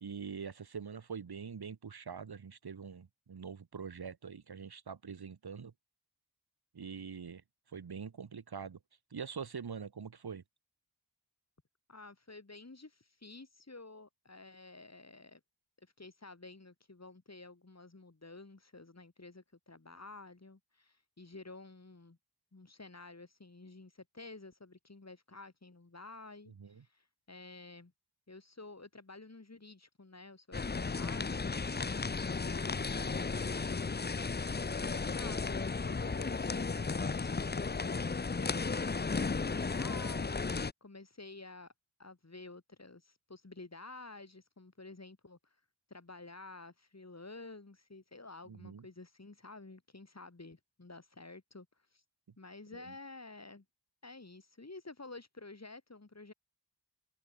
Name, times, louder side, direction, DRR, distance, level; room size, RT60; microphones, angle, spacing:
voice 1, 0.0-5.7 6.7-7.4 7.7-8.8 9.1-10.4 26.6-26.9 48.5-48.9 52.7-52.9, right 6 dB, 80° right, 2.0 m, -44 dB
voice 2, 11.9-15.4 15.8-22.2 22.5-27.9 28.3-31.5 32.2-33.9 34.7-41.7 42.0-45.6 45.9-52.0 52.4-53.6 54.0-56.3, left 3 dB, 45° left, 7.9 m, -51 dB
sound 1, 30.5-40.7, left 4 dB, 25° left, 0.7 m, -34 dB
open air
cardioid pair, 45°, 38 cm